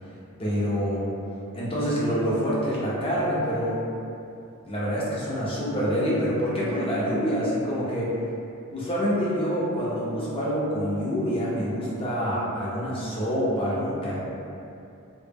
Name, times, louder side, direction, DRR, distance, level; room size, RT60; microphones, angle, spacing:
voice 1, 0.4-1.1 1.5-3.8 4.6-8.1 8.7-14.2, equal, 25° left, -7 dB, 0.5 m, -26 dB
2.1 x 2.0 x 3.3 m, 2.7 s
head